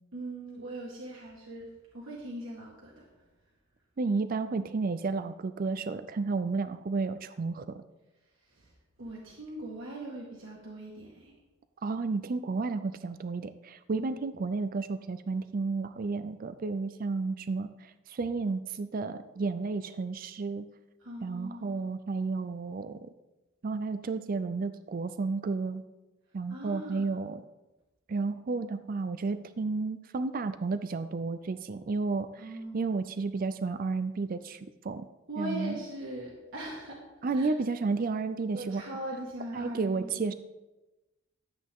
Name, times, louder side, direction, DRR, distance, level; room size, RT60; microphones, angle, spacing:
voice 1, 0.1-1.7 1.9-3.1 8.4-8.7 9.0-11.3 13.9-14.1 21.0-21.8 26.5-27.1 32.4-32.9 35.3-37.0 37.3-37.5 38.5-40.2, right 1 dB, 60° right, -3 dB, 1.8 m, -40 dB
voice 2, 4.0-7.8 11.8-20.7 21.2-23.1 23.6-25.8 26.3-27.4 28.1-35.1 35.4-35.8 37.2-38.8 39.5-40.3, right 4 dB, 40° right, 11 dB, 0.4 m, -32 dB
12.5 x 8.3 x 3.6 m, 1.1 s
head